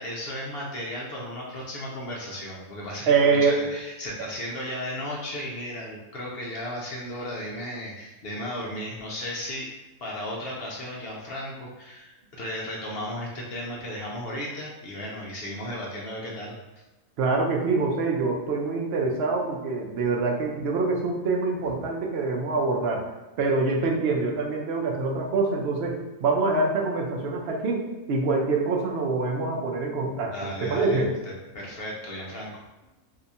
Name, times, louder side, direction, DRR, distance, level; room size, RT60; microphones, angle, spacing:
voice 1, 0.0-9.7 10.0-16.6 30.3-32.5, left 1 dB, 60° left, -3 dB, 0.7 m, -35 dB
voice 2, 3.1-3.6 17.2-23.1 23.4-30.3 30.6-31.1, right 3 dB, 60° right, 0 dB, 0.7 m, -25 dB
2.7 x 2.3 x 4.0 m, 1.1 s
omnidirectional pair, 1.4 m